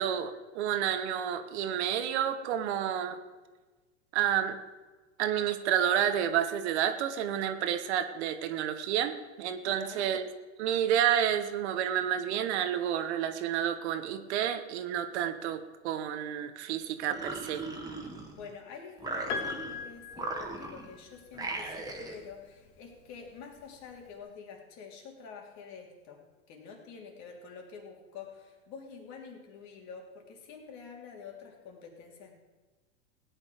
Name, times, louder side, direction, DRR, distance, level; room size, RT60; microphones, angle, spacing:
voice 1, 0.0-3.2 4.1-4.6 5.2-10.3 10.6-17.6, right 10 dB, 65° right, 10 dB, 1.2 m, -30 dB
voice 2, 9.6-10.1 18.3-26.2 26.5-32.3, left 5 dB, 50° left, 1 dB, 3.2 m, -47 dB
sound 1, 17.0-18.5 19.0-19.8 20.1-20.9 21.3-22.2, right 2 dB, 10° right, 1.9 m, -38 dB
Piano, 19.3-21.3 22.6-22.7, left 5 dB, 65° left, 2.0 m, -39 dB
17.0 x 9.6 x 5.1 m, 1.3 s
hypercardioid pair, 115°, 36 cm